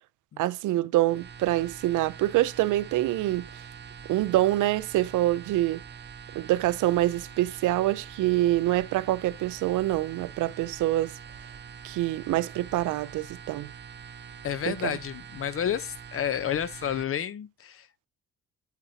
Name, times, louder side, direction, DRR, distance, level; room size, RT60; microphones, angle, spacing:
voice 1, 0.4-3.5 4.1-5.8 6.3-11.1 11.8-13.7 14.7-14.9, right 15 dB, 80° right, 0.6 m, -25 dB
sound 1, 1.0-17.0, right 7 dB, 35° right, 0.8 m, -45 dB
voice 2, 14.4-17.9, left 9 dB, 45° left, 0.7 m, -30 dB
8.2 x 7.0 x 2.8 m
cardioid pair, 90°, 30 cm